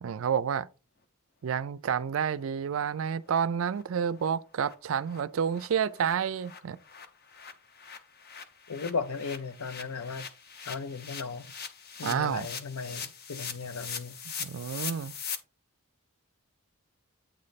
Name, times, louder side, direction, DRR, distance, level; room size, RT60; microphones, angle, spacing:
voice 1, 0.0-0.7 1.4-6.8 12.0-12.5 14.3-15.1, right 7 dB, 65° right, 0.4 m, -29 dB
sound 1, 2.4-2.5 2.8-2.9 3.3-3.4 3.7-3.8 4.2-4.3 4.6-4.7 5.1-5.2 5.5-15.4, left 6 dB, 45° left, 0.8 m, -42 dB
voice 2, 8.7-10.3 10.7-11.5 12.0-14.1, left 4 dB, 80° left, 0.6 m, -36 dB
8.9 x 3.2 x 4.1 m
head